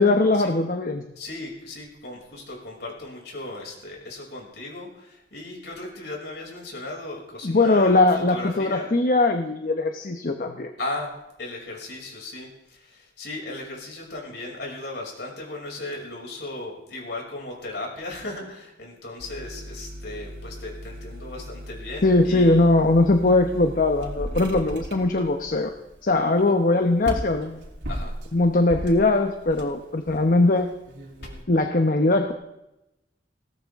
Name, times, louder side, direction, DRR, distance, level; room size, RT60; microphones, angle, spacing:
voice 1, 0.0-1.0 7.4-10.7 22.0-25.7 26.0-27.6 28.3-30.7 31.5-32.3, left 2 dB, 50° left, 5 dB, 0.9 m, -20 dB
voice 2, 1.2-8.0 8.3-8.9 10.8-22.6 26.4-26.5 27.9-28.1, left 2 dB, 70° left, -1 dB, 6.2 m, -36 dB
sound 1, 19.2-31.4, equal, 75° right, 3.2 m, -37 dB
20.0 x 17.5 x 3.6 m, 0.90 s
head